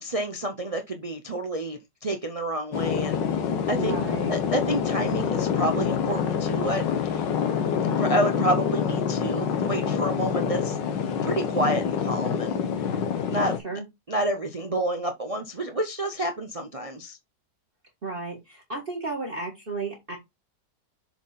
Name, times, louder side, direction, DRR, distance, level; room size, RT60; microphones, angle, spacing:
voice 1, 0.0-4.0 4.3-7.3 8.0-10.8 11.2-12.9 13.3-13.8 14.1-17.2, right 1 dB, 60° right, 0.3 m, -29 dB
sound 1, 2.7-13.6, left 7 dB, 90° left, 1.7 m, -26 dB
voice 2, 3.8-4.4 13.6-13.8 18.0-20.2, right 3 dB, 30° right, 2.0 m, -33 dB
7.0 x 3.9 x 4.1 m
omnidirectional pair, 1.9 m